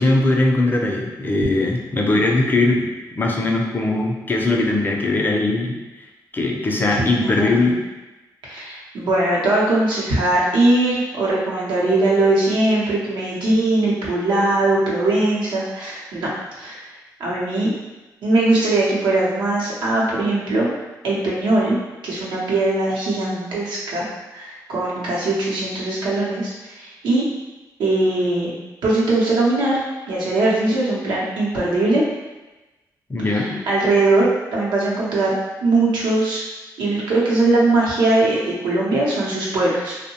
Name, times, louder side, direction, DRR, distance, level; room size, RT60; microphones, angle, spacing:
voice 1, 0.0-2.9 3.1-5.8 6.3-7.8 33.1-33.6, left 2 dB, 25° left, 1 dB, 0.5 m, -20 dB
voice 2, 7.0-7.6 8.4-16.3 16.6-16.9 17.2-17.7 18.2-20.7 21.0-21.8 22.0-24.1 24.3-27.3 27.8-28.5 28.8-29.8 30.1-32.0 33.2-36.4 36.8-40.0, right 2 dB, 90° right, -5 dB, 0.7 m, -20 dB
2.6 x 2.1 x 2.9 m, 1.1 s
cardioid pair, 65°, 8 cm